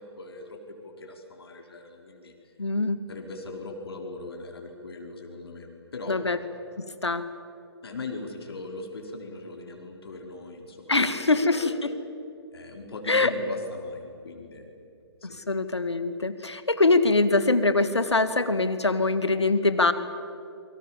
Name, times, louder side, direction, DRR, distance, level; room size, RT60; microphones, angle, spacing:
voice 1, 0.0-2.5 3.1-6.2 7.8-11.8 12.5-14.7 15.2-15.4, left 3 dB, 65° left, 2 dB, 4.5 m, -40 dB
voice 2, 2.6-3.0 6.1-6.4 6.8-7.2 10.9-11.6 13.1-13.3 15.2-19.9, left 3 dB, 80° left, 11 dB, 2.1 m, -23 dB
28.5 x 24.5 x 7.3 m, 2.7 s
figure-of-eight pair, 130°, 14 cm